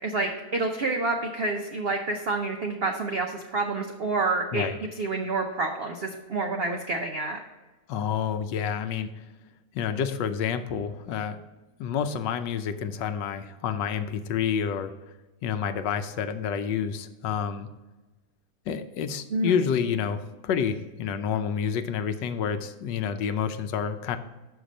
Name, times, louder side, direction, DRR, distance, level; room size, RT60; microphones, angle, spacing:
voice 1, 0.0-4.6 5.0-7.4 19.3-19.5, right 3 dB, 70° right, 3 dB, 0.5 m, -28 dB
voice 2, 7.9-9.2 9.7-11.4 11.8-14.9 15.4-17.7 18.7-24.2, left 7 dB, 80° left, 9 dB, 1.3 m, -29 dB
6.4 x 5.8 x 5.1 m, 1.2 s
omnidirectional pair, 1.9 m